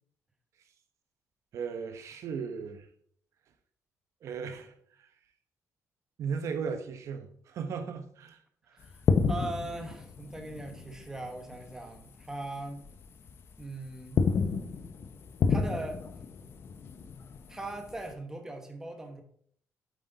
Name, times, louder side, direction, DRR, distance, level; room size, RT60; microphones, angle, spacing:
voice 1, 1.5-2.9 4.2-5.1 6.2-8.4 8.7-8.8, right 6 dB, 60° right, 0.9 m, -36 dB
sound 1, 8.8-11.8 12.1-12.3 12.8-13.6 13.9-18.1, left 5 dB, 45° left, 0.7 m, -30 dB
voice 2, 8.8-12.8 13.6-14.2 15.5-16.0 17.5-19.2, right 2 dB, 10° right, 1.1 m, -40 dB
8.4 x 7.7 x 4.0 m
cardioid pair, 165°, 6 cm